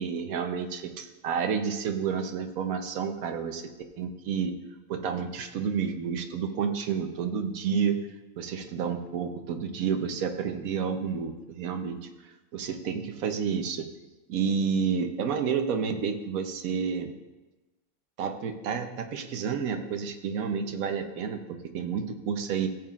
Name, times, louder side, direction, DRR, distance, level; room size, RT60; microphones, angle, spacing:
voice 1, 0.0-3.7 4.0-4.5 4.9-8.0 8.4-12.1 12.5-13.9 14.3-17.1 18.2-22.7, right 6 dB, 70° right, 6 dB, 1.2 m, -30 dB
15.5 x 7.3 x 2.4 m, 1.1 s
omnidirectional pair, 1.6 m